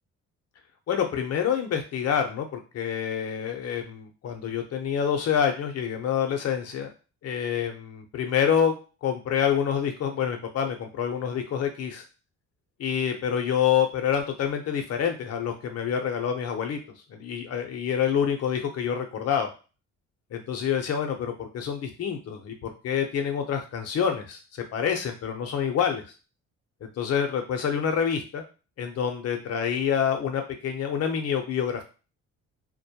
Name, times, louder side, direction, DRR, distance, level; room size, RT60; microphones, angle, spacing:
voice 1, 0.9-6.9 7.2-8.7 9.0-12.0 12.8-16.8 17.1-19.5 20.3-26.0 27.0-28.4 28.8-31.8, left 8 dB, 55° left, 5 dB, 0.7 m, -27 dB
2.2 x 2.0 x 2.8 m, 0.33 s
cardioid pair, 90°, 30 cm